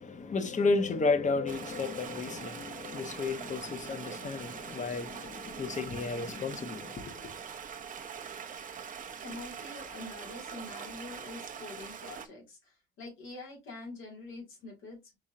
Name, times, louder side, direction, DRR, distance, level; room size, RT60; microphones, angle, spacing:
voice 1, 0.0-7.3, left 3 dB, 40° left, 0.9 m, -32 dB
Stream, 1.5-12.3, right 7 dB, 40° right, 0.8 m, -43 dB
voice 2, 9.2-15.2, left 2 dB, 80° left, 2.8 m, -45 dB
5.0 x 3.6 x 2.7 m
cardioid pair, 90°, 20 cm